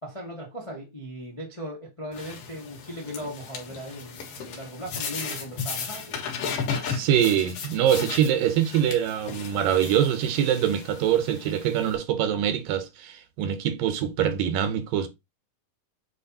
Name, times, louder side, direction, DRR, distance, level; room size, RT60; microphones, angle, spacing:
voice 1, 0.0-6.2, equal, 45° left, 0.4 m, -38 dB
sound 1, 2.1-12.0, left 6 dB, 75° left, 3.4 m, -35 dB
voice 2, 6.8-15.1, right 10 dB, 80° right, 2.6 m, -24 dB
8.5 x 2.9 x 4.1 m
omnidirectional pair, 4.0 m